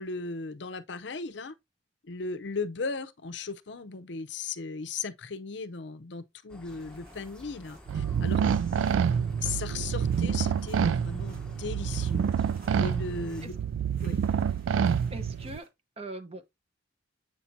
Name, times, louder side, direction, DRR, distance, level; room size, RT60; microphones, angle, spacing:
voice 1, 0.0-1.5 2.0-8.4 9.4-12.3 12.8-13.5 14.0-14.2, left 4 dB, 65° left, 0.6 m, -37 dB
sound 1, 6.5-13.5, left 1 dB, 5° left, 0.9 m, -51 dB
sound 2, 6.7-15.7, right 2 dB, 50° right, 2.5 m, -57 dB
sound 3, 7.9-15.6, right 7 dB, 85° right, 0.3 m, -27 dB
voice 2, 15.1-15.7 16.0-16.4, right 2 dB, 30° right, 0.9 m, -40 dB
7.9 x 5.8 x 2.7 m
head